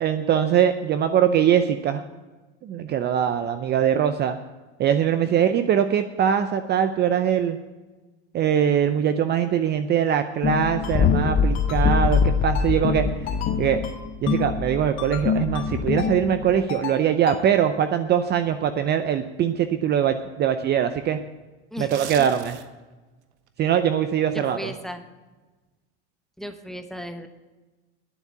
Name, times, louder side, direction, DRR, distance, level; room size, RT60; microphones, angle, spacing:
voice 1, 0.0-2.0 2.6-4.4 4.8-7.6 8.3-13.1 13.6-13.8 14.2-21.2 21.8-22.6 23.6-24.7, right 9 dB, 30° right, 10 dB, 0.6 m, -22 dB
sound 1, 10.4-16.6, left 6 dB, 30° left, 0.8 m, -23 dB
Ringtone, 10.8-11.0 11.5-11.8 12.1-12.3 12.5-12.7 13.3-13.5 13.8-14.0 14.3-14.4 15.0-15.2 15.5-15.7 16.0-16.1 16.7-17.0 17.3-17.4, left 9 dB, 50° left, 3.1 m, -35 dB
sound 2, 21.7-22.9 23.3-23.5, right 10 dB, 85° right, 1.1 m, -38 dB
voice 2, 24.3-25.0 26.4-27.3, equal, ahead, 8 dB, 0.9 m, -35 dB
10.5 x 8.0 x 8.3 m, 1.2 s
supercardioid pair, 115°, 33 cm